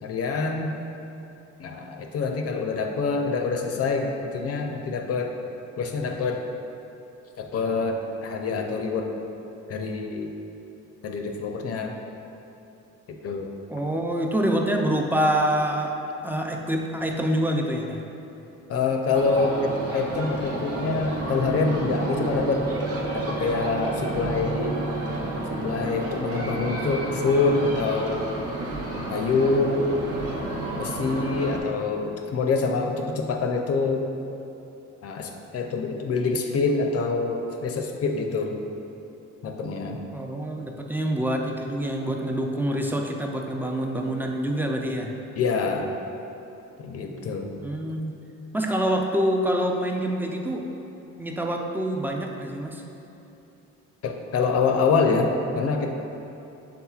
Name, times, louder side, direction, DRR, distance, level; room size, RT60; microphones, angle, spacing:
voice 1, 0.0-0.7 1.6-5.3 5.8-6.4 7.4-9.2 9.7-10.3 11.0-11.9 13.1-13.5 18.7-22.7 23.1-24.8 25.6-28.3 29.1-29.9 30.7-34.1 35.0-38.5 39.4-40.0 45.4-45.9 46.8-47.5 54.0-55.9, left 4 dB, 50° left, 3 dB, 0.5 m, -26 dB
voice 2, 13.7-18.0 40.1-45.2 47.6-48.2 48.5-50.7 51.2-52.8, right 1 dB, 5° right, 1 dB, 0.3 m, -26 dB
sound 1, 19.1-31.6, right 2 dB, 50° right, 0.8 m, -30 dB
5.8 x 3.7 x 2.3 m, 2.9 s
cardioid pair, 90°, 30 cm